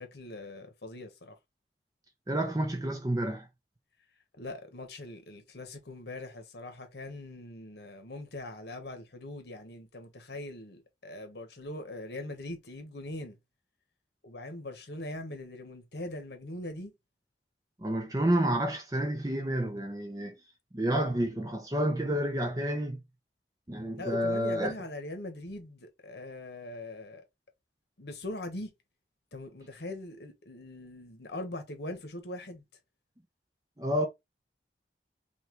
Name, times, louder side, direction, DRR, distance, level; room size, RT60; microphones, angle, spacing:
voice 1, 0.0-1.3 4.4-13.4 14.2-16.9 23.9-27.2 28.0-28.7 29.3-32.6, left 1 dB, 70° left, 1.1 m, -41 dB
voice 2, 2.3-3.5 17.8-20.4 20.7-23.0 23.7-24.7 33.8-34.1, right 1 dB, 20° right, 0.6 m, -29 dB
5.6 x 2.4 x 3.0 m
head